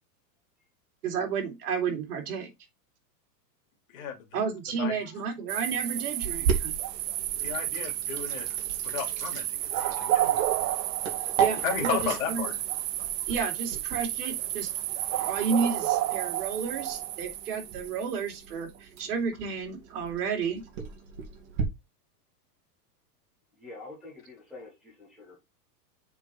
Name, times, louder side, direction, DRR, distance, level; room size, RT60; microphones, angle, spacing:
voice 1, 1.0-2.5 4.3-6.7 11.4-12.5 13.3-14.7 15.2-20.6, right 6 dB, 65° right, 2.9 m, -31 dB
voice 2, 3.9-4.4 4.8-4.9 7.4-8.5 8.8-10.4 11.6-12.5, left 7 dB, 55° left, 2.5 m, -34 dB
sound 1, 5.5-18.3, right 13 dB, 85° right, 0.9 m, -31 dB
Sink (filling or washing), 6.2-21.6, right 7 dB, 45° right, 2.3 m, -36 dB
voice 3, 23.6-25.4, left 2 dB, ahead, 0.4 m, -46 dB
7.2 x 4.4 x 4.2 m
supercardioid pair, 165°, 49 cm